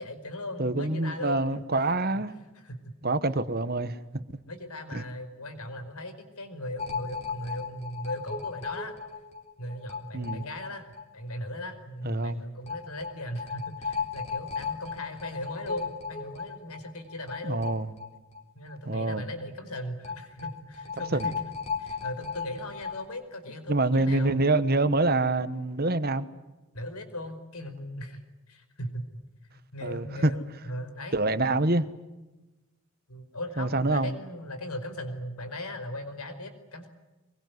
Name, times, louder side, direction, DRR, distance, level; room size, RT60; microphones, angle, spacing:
voice 1, 0.0-1.4 1.7-1.8 2.5-2.8 4.5-9.0 9.6-17.6 18.5-24.4 26.7-28.2 28.5-29.2 29.7-31.2 33.1-36.9, left 1 dB, 90° left, 5.0 m, -38 dB
voice 2, 0.6-2.3 3.0-4.2 4.9-5.0 10.1-10.4 12.0-12.4 17.4-17.9 18.8-19.2 21.1-21.3 23.7-26.3 29.8-30.3 31.1-31.9 33.6-34.1, right 2 dB, 45° right, 1.3 m, -26 dB
sound 1, 6.8-11.0 11.3-11.4 11.7-11.8 12.7-18.4 18.7-18.8 20.0-23.0, left 5 dB, 30° left, 4.2 m, -36 dB
24.5 x 23.0 x 9.5 m
head